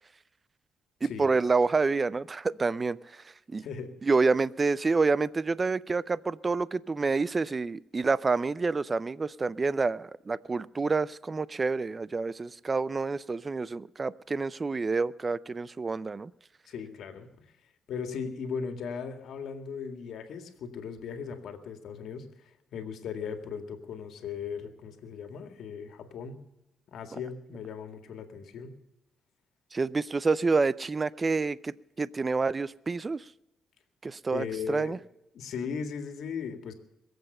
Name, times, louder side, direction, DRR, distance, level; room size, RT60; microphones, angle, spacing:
voice 1, 1.0-3.6 4.0-16.3 29.7-33.2 34.0-35.0, right 4 dB, 30° right, 20 dB, 0.5 m, -28 dB
voice 2, 3.6-3.9 16.7-26.4 26.9-28.7 34.3-35.0 35.3-36.7, left 6 dB, 70° left, 7 dB, 2.0 m, -38 dB
22.0 x 8.0 x 6.7 m, 0.88 s
cardioid pair, 90°, 0 cm